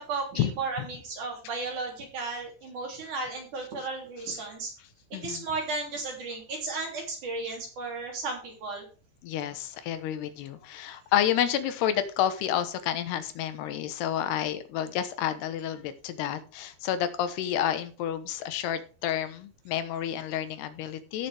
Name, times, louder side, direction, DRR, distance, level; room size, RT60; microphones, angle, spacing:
voice 1, 0.0-4.7 5.1-8.8, right 3 dB, 50° right, 1 dB, 4.4 m, -34 dB
voice 2, 5.1-5.4 9.2-21.3, left 10 dB, 80° left, 11 dB, 3.1 m, -30 dB
15.5 x 7.0 x 3.4 m, 0.38 s
omnidirectional pair, 4.7 m